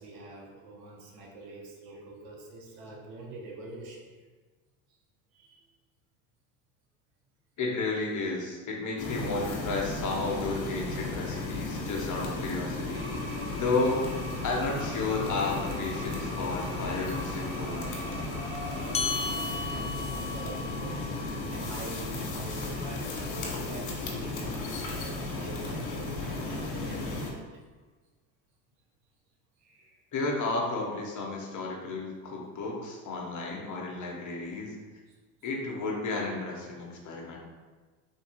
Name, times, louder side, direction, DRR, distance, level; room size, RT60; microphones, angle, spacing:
voice 1, 0.0-4.1 5.3-5.7 19.0-27.5 29.6-30.0 35.1-35.2, right 2 dB, 65° right, -1 dB, 1.1 m, -46 dB
voice 2, 7.6-13.1 13.6-14.0 14.4-17.9 30.1-34.7 35.4-37.4, left 3 dB, 45° left, -1 dB, 1.3 m, -32 dB
sound 1, 9.0-27.3, left 2 dB, 75° left, 1.3 m, -35 dB
sound 2, 12.9-18.9, right 1 dB, 30° right, 0.9 m, -43 dB
sound 3, 18.9-23.8, left 4 dB, 15° left, 0.4 m, -37 dB
3.6 x 3.1 x 4.7 m, 1.3 s
supercardioid pair, 90°, 43 cm